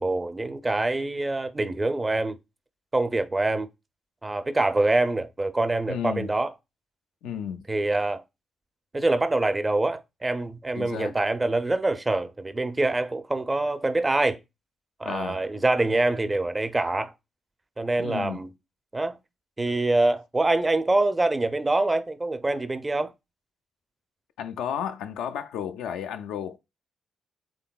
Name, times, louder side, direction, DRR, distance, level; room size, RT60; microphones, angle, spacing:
voice 1, 0.0-2.4 2.9-3.7 4.2-6.5 7.7-8.2 8.9-14.4 15.0-17.1 17.8-18.5 18.9-19.2 19.6-23.1, right 2 dB, 25° right, 0.5 m, -25 dB
voice 2, 5.9-6.3 7.2-7.7 10.8-11.2 15.0-15.4 18.0-18.4 24.4-26.6, left 8 dB, 80° left, 0.3 m, -33 dB
3.7 x 3.4 x 2.3 m
supercardioid pair, 50°, 0 cm